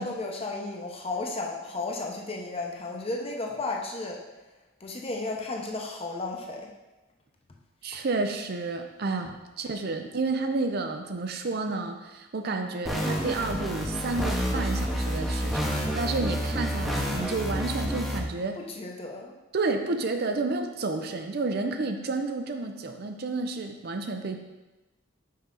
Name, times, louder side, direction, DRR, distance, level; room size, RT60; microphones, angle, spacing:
voice 1, 0.0-4.2 4.8-6.7 18.6-19.3, left 2 dB, 30° left, 0 dB, 0.8 m, -34 dB
voice 2, 7.8-18.6 19.5-24.4, right 3 dB, 55° right, 5 dB, 0.5 m, -30 dB
sound 1, 12.9-18.2, equal, ahead, 0.8 m, -29 dB
5.6 x 5.5 x 3.8 m, 1.1 s
head